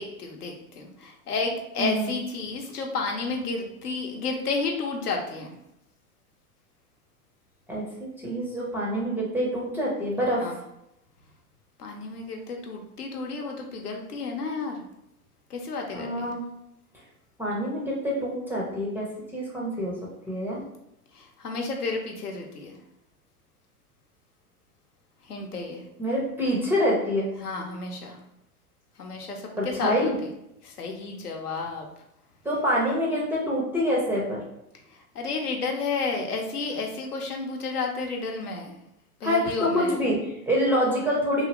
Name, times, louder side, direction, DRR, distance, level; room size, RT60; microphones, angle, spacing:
voice 1, 0.0-5.5 10.4-10.6 11.8-14.8 15.5-16.2 21.1-22.8 25.2-25.8 27.4-28.2 29.0-30.3 30.6-31.9 34.9-38.7 39.2-40.0, left 4 dB, 85° left, 2 dB, 0.7 m, -32 dB
voice 2, 1.8-2.1 7.7-10.5 15.9-16.4 17.4-19.1 19.3-20.0 20.3-20.6 26.0-27.3 29.6-30.2 32.4-34.4 39.2-41.5, equal, 5° right, -5 dB, 0.4 m, -26 dB
2.7 x 2.4 x 2.9 m, 0.83 s
hypercardioid pair, 95°, 45 cm